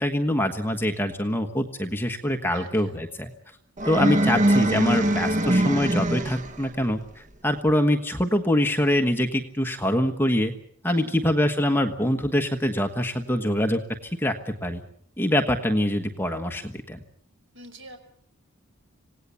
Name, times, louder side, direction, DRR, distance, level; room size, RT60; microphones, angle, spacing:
voice 1, 0.0-3.3 3.8-10.5 10.8-13.8 14.2-14.8 15.2-17.0, left 1 dB, 10° left, 5 dB, 1.3 m, -24 dB
voice 2, 2.5-3.0 10.8-11.1 17.5-18.0, right 1 dB, 55° right, 6 dB, 5.3 m, -45 dB
sound 1, 3.8-6.7, right 1 dB, 35° right, 0.9 m, -22 dB
26.5 x 18.0 x 7.0 m, 0.65 s
head